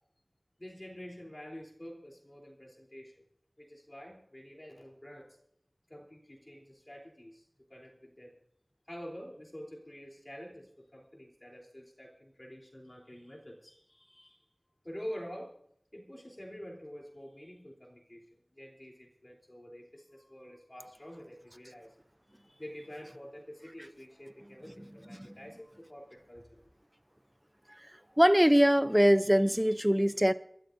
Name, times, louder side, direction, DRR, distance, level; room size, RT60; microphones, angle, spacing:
voice 1, 0.6-3.1 3.6-5.3 5.9-8.3 8.9-14.5 14.8-15.5 15.9-21.9 22.3-26.6, equal, 30° left, 3.4 m, -47 dB
voice 2, 28.2-30.3, equal, 10° right, 0.6 m, -22 dB
28.0 x 12.5 x 2.6 m
wide cardioid pair, 45°, 0 cm